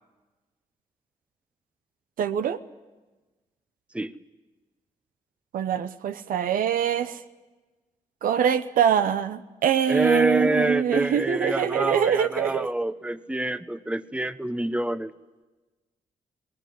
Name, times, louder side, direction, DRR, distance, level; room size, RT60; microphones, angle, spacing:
voice 1, 2.2-2.6 5.5-7.2 8.2-12.7, right 8 dB, 80° right, 10 dB, 0.9 m, -24 dB
voice 2, 9.9-15.1, right 1 dB, 10° right, 12 dB, 1.0 m, -26 dB
20.0 x 18.5 x 9.4 m, 1.2 s
supercardioid pair, 55°, 14 cm